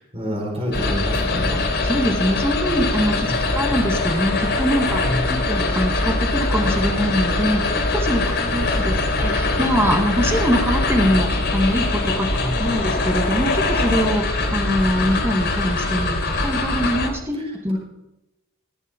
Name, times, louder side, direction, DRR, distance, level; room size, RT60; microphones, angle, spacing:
voice 1, 0.0-1.6 3.2-3.6 4.9-5.3 8.3-9.0 12.3-12.6, equal, 30° right, -3 dB, 4.4 m, -29 dB
sound 1, 0.7-17.1, left 2 dB, 55° left, 3.3 m, -22 dB
voice 2, 1.8-5.0 5.3-12.3 12.6-17.8, equal, 10° right, 1 dB, 1.9 m, -23 dB
19.5 x 7.3 x 5.3 m, 0.92 s
head